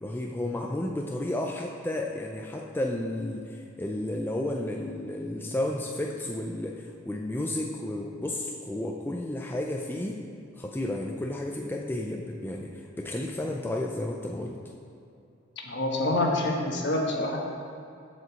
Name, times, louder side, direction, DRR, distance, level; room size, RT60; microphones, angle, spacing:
voice 1, 0.0-10.2 10.6-14.6, left 1 dB, 10° left, 0 dB, 0.4 m, -32 dB
voice 2, 15.6-17.4, left 2 dB, 60° left, 0 dB, 1.2 m, -26 dB
7.8 x 5.1 x 7.0 m, 2.6 s
head